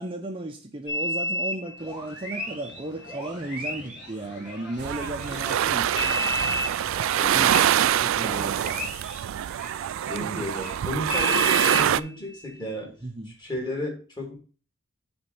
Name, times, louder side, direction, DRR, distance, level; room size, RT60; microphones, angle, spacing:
voice 1, 0.0-6.3 7.3-8.9 10.2-10.5 13.0-13.4, right 1 dB, 25° right, 3 dB, 0.7 m, -35 dB
sound 1, 0.9-5.6 6.0-10.7 11.1-12.7 13.6-13.7, equal, 5° right, 1.5 m, -33 dB
sound 2, 1.8-7.9, left 1 dB, 55° left, 1.6 m, -47 dB
sound 3, 4.8-12.0, right 10 dB, 75° right, 0.3 m, -25 dB
voice 2, 7.1-7.5 9.3-9.4 10.0-12.9 13.3-14.4, left 1 dB, 20° left, 0 dB, 2.8 m, -34 dB
7.4 x 4.4 x 5.3 m, 0.36 s
head